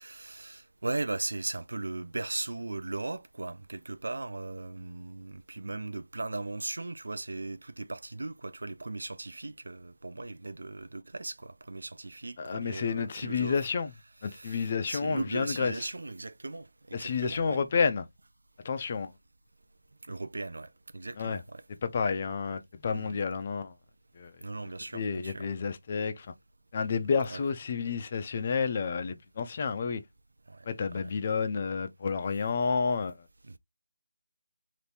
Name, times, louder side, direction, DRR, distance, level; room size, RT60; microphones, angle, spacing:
voice 1, 0.0-13.7 14.2-17.6 20.0-21.6 22.9-23.2 24.4-25.5 27.3-27.4 30.5-30.7 30.9-31.1 33.4-33.6, right 2 dB, 70° right, 0.4 m, -38 dB
voice 2, 12.4-13.9 14.2-15.7 16.9-18.1 18.6-19.1 21.2-21.4 21.8-23.7 24.2-24.3 24.9-26.3 26.7-30.0 30.7-33.2, left 5 dB, 25° left, 0.4 m, -30 dB
2.7 x 2.5 x 3.3 m
figure-of-eight pair, 175°, 0 cm